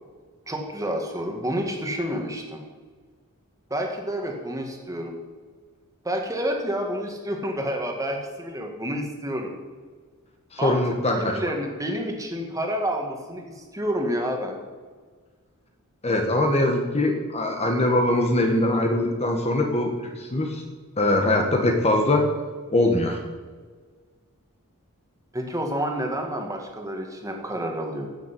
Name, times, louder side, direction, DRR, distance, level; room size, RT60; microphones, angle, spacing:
voice 1, 0.5-2.6 3.7-5.1 6.0-9.5 10.6-10.8 11.1-14.6 25.3-28.1, equal, 15° right, 2 dB, 2.0 m, -29 dB
voice 2, 10.5-11.4 16.0-20.6 21.0-22.2 22.7-23.2, left 1 dB, 30° left, 2 dB, 1.5 m, -22 dB
14.0 x 7.1 x 8.4 m, 1.5 s
head